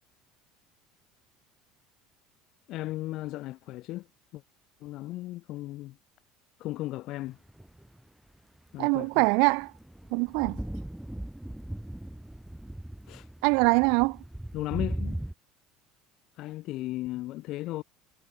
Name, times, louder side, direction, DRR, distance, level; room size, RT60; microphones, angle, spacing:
voice 1, 2.7-4.1 4.3-4.4 4.8-6.0 6.6-7.4 8.7-9.1 13.1-13.3 14.5-15.2 16.4-17.8, left 17 dB, 55° left, 5.8 m, -35 dB
sound 1, 7.5-8.0 8.9-15.3, right 1 dB, 5° right, 1.2 m, -38 dB
voice 2, 8.8-9.7 10.1-10.6 13.4-14.2, right 33 dB, 75° right, 2.2 m, -23 dB
cardioid pair, 130°, 0 cm